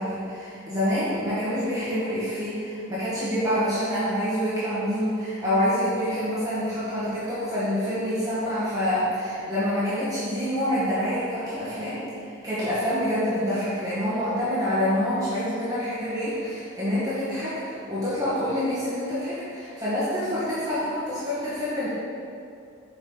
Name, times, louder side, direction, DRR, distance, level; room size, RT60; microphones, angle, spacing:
voice 1, 0.0-21.9, equal, 20° right, -11 dB, 1.8 m, -27 dB
8.5 x 5.3 x 4.1 m, 2.6 s
head